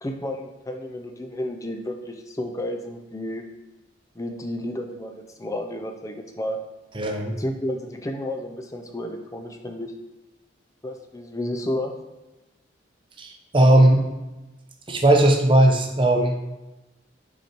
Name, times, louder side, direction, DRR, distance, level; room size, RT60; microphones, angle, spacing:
voice 1, 0.0-3.5 4.2-6.6 7.4-9.9 10.8-11.9, left 1 dB, 15° left, 4 dB, 0.5 m, -31 dB
voice 2, 6.9-7.4 13.2-14.0 14.9-16.4, right 1 dB, 25° right, 2 dB, 0.7 m, -18 dB
5.6 x 4.3 x 4.5 m, 1.1 s
head